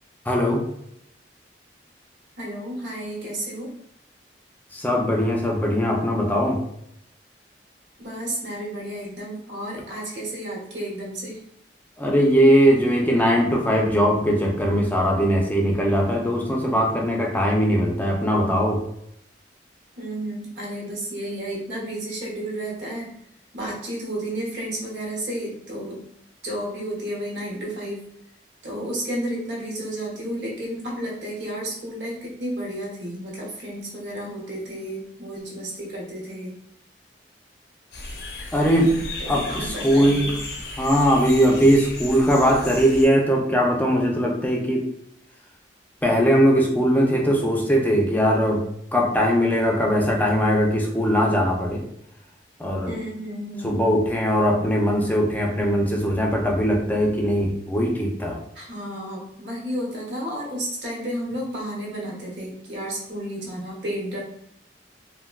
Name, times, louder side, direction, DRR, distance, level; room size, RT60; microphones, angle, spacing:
voice 1, 0.3-0.6 4.7-6.6 12.0-18.8 38.5-40.3 40.8-44.9 46.0-48.6 48.9-51.8 52.6-52.9 53.6-58.4, equal, 10° left, 0 dB, 0.5 m, -20 dB
voice 2, 2.4-3.7 8.0-11.4 20.0-23.1 23.5-26.0 26.4-28.0 28.6-36.6 39.2-40.4 52.8-53.9 58.5-64.2, right 1 dB, 80° right, -3 dB, 1.1 m, -32 dB
sound 1, 37.9-43.1, left 2 dB, 70° left, 0.6 m, -34 dB
3.4 x 2.2 x 2.2 m, 0.74 s
head